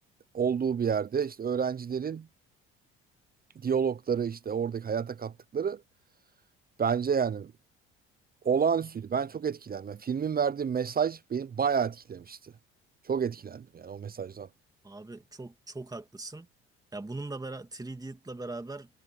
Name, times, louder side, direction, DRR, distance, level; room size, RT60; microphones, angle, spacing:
voice 1, 0.3-2.3 3.6-5.8 6.8-7.5 8.4-12.5 13.1-14.5, right 7 dB, 30° right, 0.7 m, -29 dB
voice 2, 14.8-16.5 16.9-18.9, right 2 dB, 10° right, 2.3 m, -40 dB
supercardioid pair, 70°, 30 cm